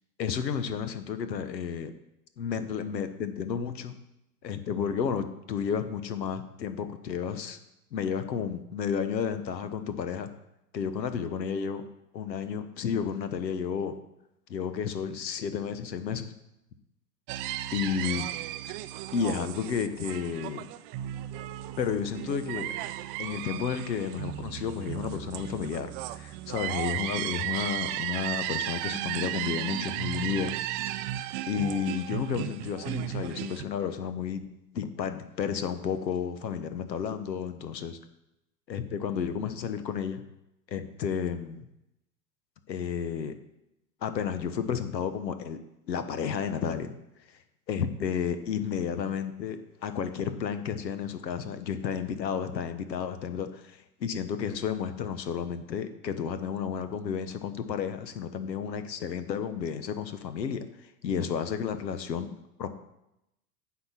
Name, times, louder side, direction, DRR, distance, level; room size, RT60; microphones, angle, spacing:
voice 1, 0.2-1.9 2.4-3.9 4.4-7.6 7.9-10.3 10.7-11.8 12.1-13.9 14.5-16.3 17.7-18.3 19.1-20.6 21.8-22.7 23.2-30.5 31.5-34.4 34.7-38.0 38.7-40.2 40.7-41.6 42.7-43.3 44.0-45.6 45.9-46.9 47.7-60.6 61.0-62.3 62.6-62.7, left 7 dB, 85° left, 10 dB, 1.1 m, -32 dB
sound 1, 17.3-33.6, right 14 dB, 35° right, 0.4 m, -35 dB
9.7 x 4.4 x 7.2 m, 0.86 s
hypercardioid pair, 100°, 50 cm